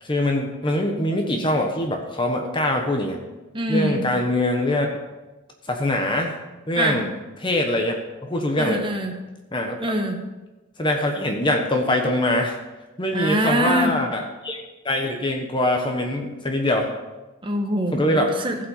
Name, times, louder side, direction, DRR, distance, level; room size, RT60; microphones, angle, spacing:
voice 1, 0.0-3.2 3.7-4.9 5.6-6.4 6.7-7.1 7.4-7.9 8.2-8.8 9.5-9.8 10.8-12.6 13.0-16.9 17.9-18.3, left 1 dB, 25° left, 3 dB, 1.2 m, -23 dB
voice 2, 3.5-4.0 6.8-7.0 8.6-9.2 9.8-10.2 13.1-13.9 15.9-16.0 17.4-18.6, right 1 dB, 25° right, 4 dB, 1.3 m, -24 dB
15.5 x 5.5 x 7.2 m, 1.1 s
head